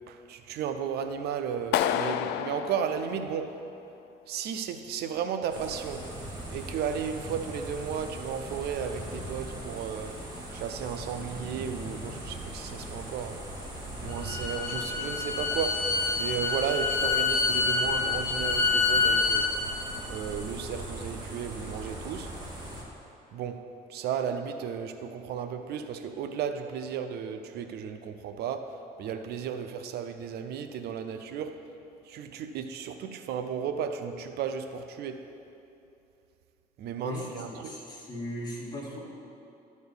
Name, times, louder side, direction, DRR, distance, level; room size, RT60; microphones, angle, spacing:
voice 1, 0.1-3.6 4.3-6.1 6.5-10.2 10.5-13.4 14.0-19.5 20.1-22.3 23.3-31.7 32.1-35.3 36.8-37.7, right 7 dB, 75° right, 8 dB, 0.6 m, -34 dB
Clapping, 1.7-3.8, left 11 dB, 80° left, 0.4 m, -30 dB
sound 1, 5.5-22.8, right 1 dB, 25° right, 2.2 m, -40 dB
Bowed string instrument, 14.1-19.4, left 4 dB, 65° left, 1.6 m, -27 dB
voice 2, 37.0-39.0, left 1 dB, 25° left, -4 dB, 2.2 m, -38 dB
12.0 x 4.2 x 7.0 m, 2.7 s
cardioid pair, 110°, 17 cm